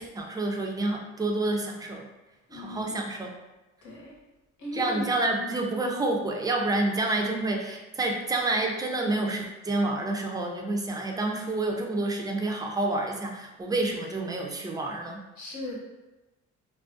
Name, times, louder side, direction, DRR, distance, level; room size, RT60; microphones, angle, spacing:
voice 1, 0.0-2.1 2.5-3.3 4.7-15.2, right 2 dB, 15° right, 1 dB, 0.3 m, -28 dB
voice 2, 2.5-3.0 3.8-4.2 4.6-5.1 5.4-5.6 7.2-7.5 15.4-15.8, left 2 dB, 90° left, -5 dB, 0.9 m, -37 dB
2.4 x 2.2 x 2.4 m, 1.1 s
cardioid pair, 90°, 30 cm